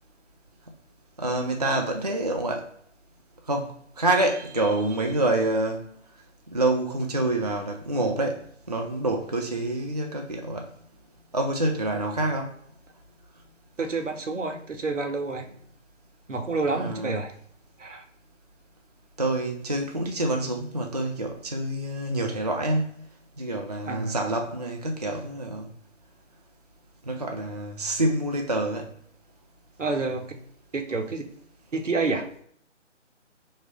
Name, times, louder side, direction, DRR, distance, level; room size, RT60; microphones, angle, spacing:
voice 1, 1.2-2.7 3.5-5.8 6.5-10.7 11.3-12.6 16.7-17.2 19.2-23.0 23.4-25.7 27.0-28.9, right 1 dB, 35° right, 0.4 m, -27 dB
voice 2, 13.8-15.5 16.3-17.3 17.8-18.0 23.9-24.2 29.8-30.3 30.7-31.2 31.7-32.3, right 3 dB, 75° right, 0.9 m, -28 dB
3.5 x 3.1 x 3.9 m
figure-of-eight pair, 150°, 37 cm